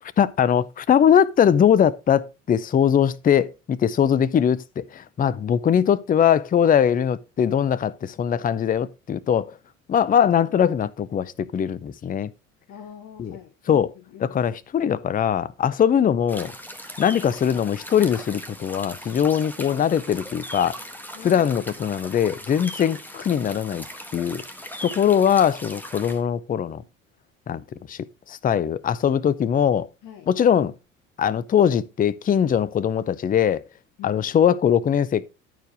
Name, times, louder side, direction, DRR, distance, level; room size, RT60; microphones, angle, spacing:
voice 1, 0.2-9.5 9.9-12.3 13.2-13.4 13.7-13.9 14.2-16.5 17.0-20.8 21.2-23.8 24.1-24.4 24.8-26.8 27.5-27.6 27.9-28.0 28.3-29.9 30.3-30.7 31.2-33.6 34.0-35.2, left 8 dB, 20° left, 0.5 m, -21 dB
voice 2, 12.7-14.3 21.1-21.5 22.8-23.0 30.0-30.3 34.0-34.2, left 9 dB, 55° left, 1.3 m, -43 dB
sound 1, 16.3-26.2, equal, 5° left, 1.4 m, -39 dB
11.0 x 4.5 x 4.7 m
hypercardioid pair, 60°, 39 cm